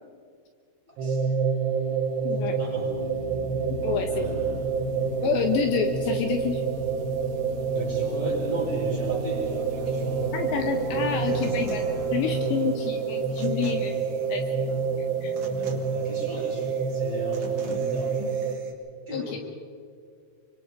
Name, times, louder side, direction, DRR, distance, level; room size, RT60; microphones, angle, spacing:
voice 1, 0.9-1.3 2.6-2.9 4.1-4.7 7.7-10.3 11.0-11.9 12.2-12.5 15.6-18.3 19.1-19.4, equal, 15° right, -4 dB, 6.4 m, -37 dB
sound 1, 1.0-18.6, right 5 dB, 65° right, 3.7 m, -28 dB
voice 2, 2.2-2.6 3.8-4.4 5.2-6.6 10.3-11.8 12.1-14.0 14.3-14.7 15.2-15.3 19.1-19.4, left 8 dB, 75° left, 5 dB, 3.1 m, -28 dB
sound 2, 2.4-13.9, equal, 5° left, 5.3 m, -39 dB
Human voice / Acoustic guitar, 10.7-18.7, right 3 dB, 45° right, 3.6 m, -44 dB
29.0 x 25.0 x 5.1 m, 2.1 s
omnidirectional pair, 5.6 m